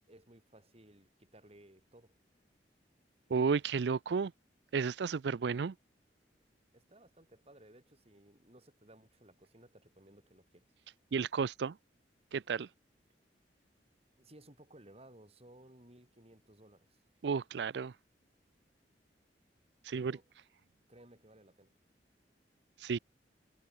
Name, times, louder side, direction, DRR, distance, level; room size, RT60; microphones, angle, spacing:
voice 1, 0.1-2.1 6.7-10.7 14.2-17.0 19.9-20.3 20.9-21.7, right 1 dB, 35° right, 7.1 m, -59 dB
voice 2, 3.3-4.3 4.7-5.7 11.1-11.8 12.3-12.7 17.2-17.9 19.8-20.2 22.8-23.0, right 5 dB, 70° right, 0.4 m, -32 dB
head